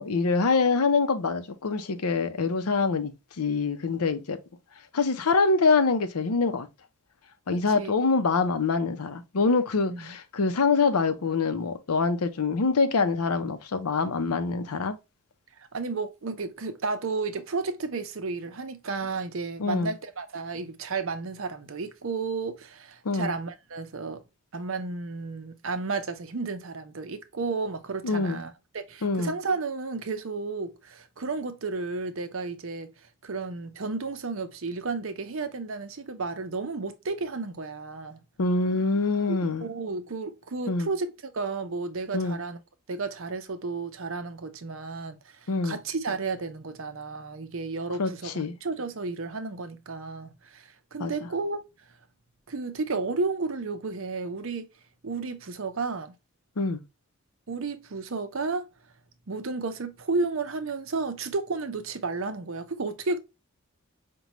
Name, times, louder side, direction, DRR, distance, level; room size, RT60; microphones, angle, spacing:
voice 1, 0.0-3.1 3.4-4.4 4.9-6.7 7.5-15.0 19.6-19.9 23.0-23.3 28.0-28.4 29.0-29.3 38.4-39.7 40.7-40.9 42.1-42.4 45.5-45.8 48.0-48.5 51.0-51.3 56.6-56.8, left 4 dB, 90° left, 0.6 m, -25 dB
voice 2, 7.5-7.9 9.9-10.2 15.6-24.2 24.5-32.9 33.2-38.2 39.3-42.6 42.9-51.6 52.5-54.7 55.0-56.2 57.5-58.7 59.3-63.2, right 4 dB, 65° right, 0.6 m, -32 dB
5.2 x 2.2 x 2.9 m
head